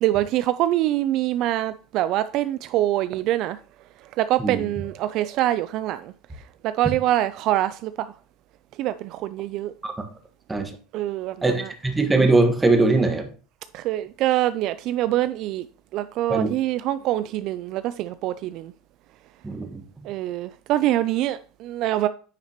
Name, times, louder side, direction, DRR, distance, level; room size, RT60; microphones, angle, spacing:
voice 1, 0.0-3.6 4.2-6.1 6.6-8.1 8.8-9.7 10.9-11.7 13.7-15.7 15.9-18.7 20.0-22.1, right 14 dB, 55° right, 0.3 m, -24 dB
voice 2, 11.4-13.3 16.3-16.5 19.4-19.8, right 2 dB, 10° right, 1.4 m, -21 dB
9.8 x 5.9 x 3.0 m
supercardioid pair, 130°, 0 cm